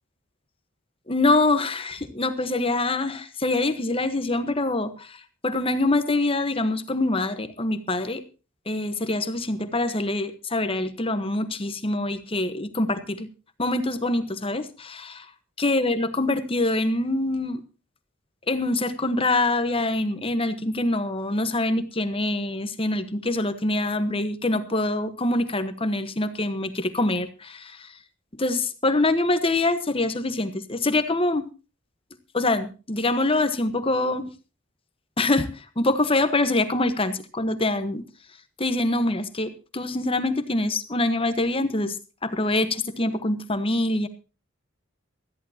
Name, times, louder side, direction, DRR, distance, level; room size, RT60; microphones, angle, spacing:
voice 1, 1.1-8.2 8.7-13.3 13.6-15.3 15.6-17.6 18.5-27.9 28.4-31.5 32.3-34.3 35.2-38.0 38.6-41.9 42.2-44.1, left 2 dB, 30° left, 11 dB, 1.2 m, -25 dB
20.0 x 14.0 x 2.9 m, 0.33 s
head